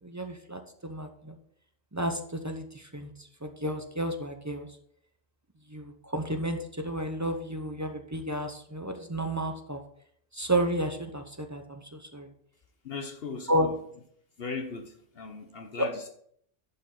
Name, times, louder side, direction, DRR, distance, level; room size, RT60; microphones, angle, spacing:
voice 1, 0.0-1.4 1.9-4.7 5.7-9.8 10.3-12.3 13.5-13.7 15.8-15.9, right 1 dB, 20° right, 6 dB, 0.6 m, -32 dB
voice 2, 12.8-13.8 14.4-16.1, left 4 dB, 55° left, 6 dB, 1.0 m, -38 dB
11.0 x 5.5 x 3.8 m, 0.66 s
omnidirectional pair, 1.3 m